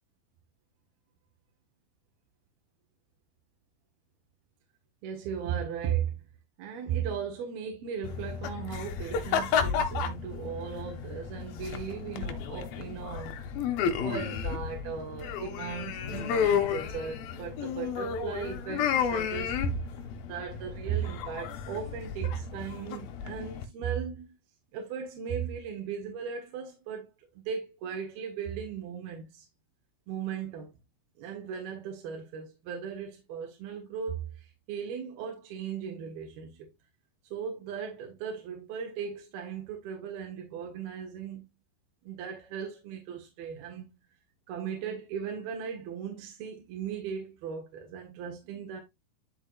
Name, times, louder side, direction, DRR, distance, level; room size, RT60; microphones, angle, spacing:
voice 1, 5.0-6.1 6.6-13.3 13.9-19.8 20.2-24.3 24.7-27.1 27.3-29.5 30.1-30.7 31.2-36.7 37.3-41.5 42.0-43.9 44.5-48.8, right 8 dB, 70° right, 3.4 m, -37 dB
sound 1, 8.0-23.6, left 7 dB, 70° left, 2.7 m, -32 dB
12.0 x 4.9 x 2.5 m
omnidirectional pair, 4.7 m